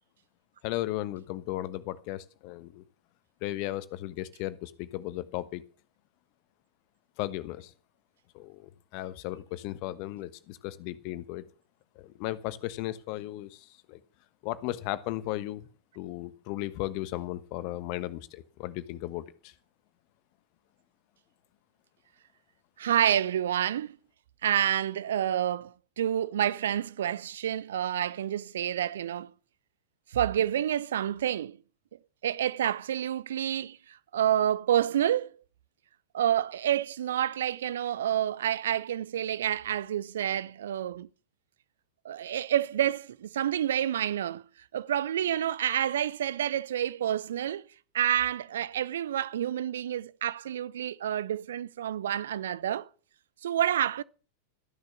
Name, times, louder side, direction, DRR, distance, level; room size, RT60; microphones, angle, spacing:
voice 1, 0.6-2.8 3.4-5.6 7.2-7.7 8.3-11.4 11.9-14.0 14.4-15.7 15.9-19.5, left 16 dB, 45° left, 1.2 m, -36 dB
voice 2, 22.8-23.9 24.4-29.3 30.1-31.6 32.2-35.3 36.1-41.1 42.0-44.4 44.7-47.6 47.9-52.9 53.4-54.0, right 10 dB, 60° right, 0.7 m, -28 dB
14.5 x 10.5 x 6.0 m
figure-of-eight pair, 90°, 0 cm